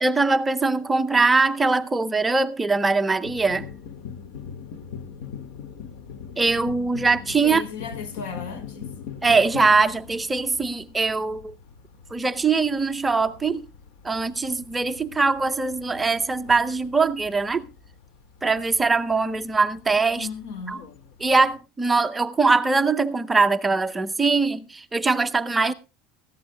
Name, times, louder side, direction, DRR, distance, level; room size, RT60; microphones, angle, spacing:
voice 1, 0.0-3.7 6.4-7.6 9.2-11.5 12.1-13.7 14.0-17.7 18.4-20.3 20.7-20.8 21.2-25.7, right 4 dB, 10° right, 0.6 m, -22 dB
sound 1, 3.2-21.6, left 7 dB, 60° left, 2.0 m, -42 dB
voice 2, 7.4-8.9 20.1-20.9, left 6 dB, 90° left, 4.8 m, -35 dB
19.5 x 15.0 x 2.2 m
cardioid pair, 160°, 0 cm